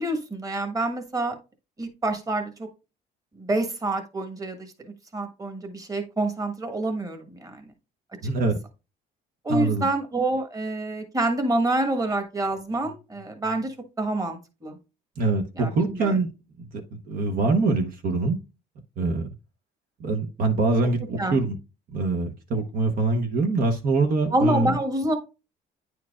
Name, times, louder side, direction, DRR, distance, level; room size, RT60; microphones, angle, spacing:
voice 1, 0.0-1.4 1.8-2.5 3.4-7.6 9.4-14.8 15.6-16.2 21.2-21.4 24.3-25.2, right 2 dB, 20° right, 6 dB, 1.4 m, -27 dB
voice 2, 8.2-8.6 9.5-9.9 15.2-16.3 16.7-18.4 19.0-19.3 20.0-21.5 21.9-24.8, right 3 dB, 60° right, 4 dB, 0.9 m, -24 dB
9.5 x 4.6 x 2.4 m, 0.29 s
cardioid pair, 110°, 17 cm